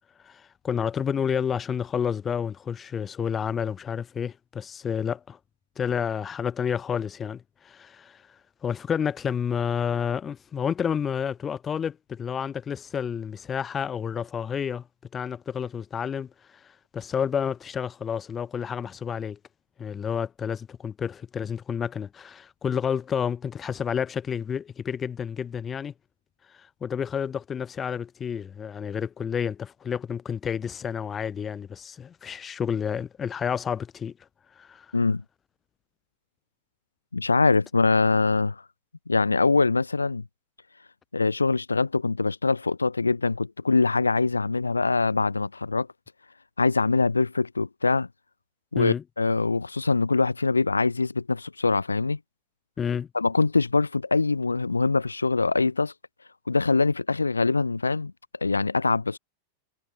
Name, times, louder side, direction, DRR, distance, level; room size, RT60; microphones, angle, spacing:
voice 1, 0.2-5.4 5.8-8.4 8.6-14.9 15.1-19.4 19.8-25.9 26.5-34.1 34.6-34.9 48.8-49.0 52.8-53.1, left 7 dB, 20° left, 5.2 m, -30 dB
voice 2, 37.1-38.6 39.1-40.2 41.1-45.9 46.6-48.1 48.7-52.2 53.1-55.9 56.5-58.1 58.4-59.2, left 3 dB, 80° left, 2.8 m, -23 dB
figure-of-eight pair, 90°, 0 cm